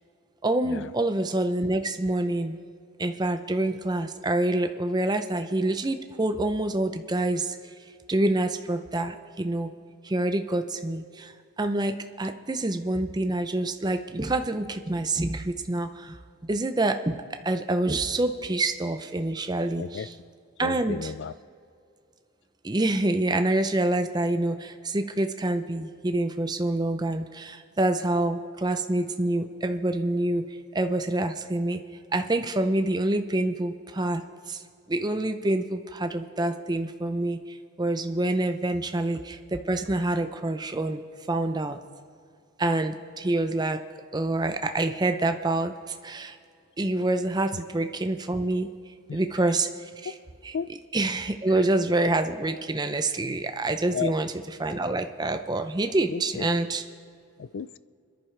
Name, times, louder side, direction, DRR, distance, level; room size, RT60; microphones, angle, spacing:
voice 1, 0.4-2.6 3.0-7.6 8.1-9.7 10.0-16.2 16.5-17.2 17.4-20.1 20.6-21.0 22.6-31.8 32.1-34.2 34.5-34.6 34.9-41.8 42.6-43.8 44.1-46.4 46.8-48.7 49.1-50.1 50.4-50.5 50.9-54.3 54.6-56.8, right 2 dB, 20° right, 0.5 m, -27 dB
voice 2, 19.8-20.1 20.6-21.3 38.7-38.8 47.5-47.6 49.1-49.2 50.5-50.7 51.6-51.7 53.9-54.1 56.1-56.5 57.4-57.8, left 7 dB, 55° left, 0.3 m, -33 dB
27.0 x 10.5 x 3.3 m
head